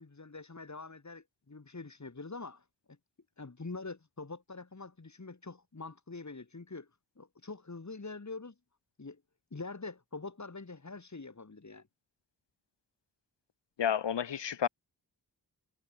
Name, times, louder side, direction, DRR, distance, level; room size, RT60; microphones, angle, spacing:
voice 1, 0.0-2.6 3.4-6.9 7.2-8.5 9.0-9.2 9.5-11.9, left 3 dB, 40° left, 7.2 m, -44 dB
voice 2, 13.8-14.7, left 8 dB, 80° left, 1.6 m, -30 dB
cardioid pair, 55°, 42 cm